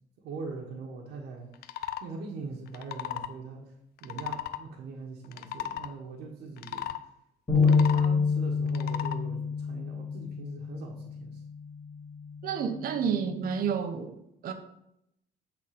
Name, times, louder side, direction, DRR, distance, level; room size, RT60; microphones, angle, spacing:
voice 1, 0.2-1.5 2.0-3.6 4.0-6.9 7.5-11.4, right 4 dB, 75° right, 1.5 m, -41 dB
sound 1, 1.5-2.1 2.7-3.3 4.0-4.6 5.2-5.9 6.6-7.0 7.6-8.1 8.7-9.2, left 11 dB, 70° left, 0.6 m, -36 dB
sound 2, 7.5-13.7, left 5 dB, 25° left, 3.4 m, -29 dB
voice 2, 12.4-14.1 14.4-14.5, right 7 dB, 60° right, 1.1 m, -30 dB
8.4 x 4.1 x 5.9 m
cardioid pair, 110°, 17 cm